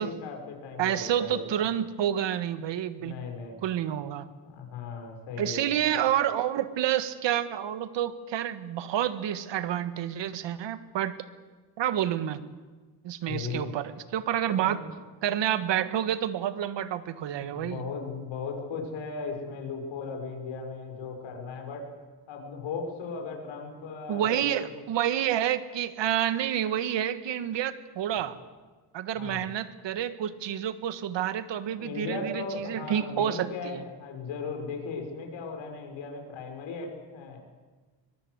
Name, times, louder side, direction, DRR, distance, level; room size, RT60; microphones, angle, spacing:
voice 1, 0.0-1.5 3.0-3.6 4.4-5.7 13.3-13.7 14.5-14.9 17.4-21.9 22.3-24.7 29.1-29.4 31.8-37.4, left 4 dB, 75° left, 2 dB, 6.0 m, -37 dB
voice 2, 0.8-3.2 3.6-4.3 5.4-11.2 11.8-12.4 13.0-14.8 15.2-17.8 24.1-28.4 28.9-33.8, right 10 dB, 70° right, 12 dB, 1.7 m, -29 dB
23.5 x 22.0 x 8.0 m, 1.3 s
cardioid pair, 110°, 46 cm